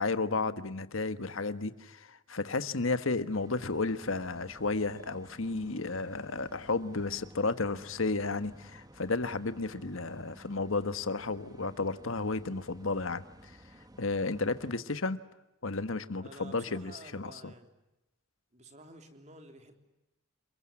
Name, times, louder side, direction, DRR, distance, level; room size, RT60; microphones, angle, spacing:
voice 1, 0.0-13.5 14.0-15.2 15.6-17.5, left 3 dB, 75° left, 12 dB, 1.4 m, -33 dB
sound 1, 3.4-14.8, right 1 dB, 20° right, 1.6 m, -55 dB
voice 2, 16.2-17.7 18.5-19.8, right 2 dB, 35° right, 5 dB, 3.7 m, -51 dB
29.5 x 22.0 x 8.6 m, 0.94 s
head